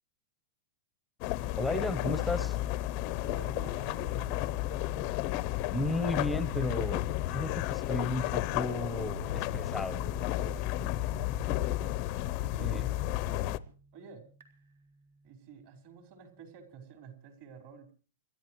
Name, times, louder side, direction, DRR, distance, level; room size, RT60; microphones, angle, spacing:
sound 1, 1.2-13.6, left 15 dB, 30° left, 0.7 m, -32 dB
voice 1, 1.6-2.6 5.7-7.0 7.3-10.1 12.6-12.9, left 1 dB, ahead, 12 dB, 1.0 m, -34 dB
sound 2, 1.8-16.9, right 3 dB, 65° right, 3.8 m, -54 dB
voice 2, 3.2-4.5 11.0-11.8 12.4-13.6 13.9-14.2 15.2-17.9, right 6 dB, 40° right, 5 dB, 4.7 m, -50 dB
29.0 x 13.0 x 3.1 m, 0.40 s
hypercardioid pair, 160°, 0 cm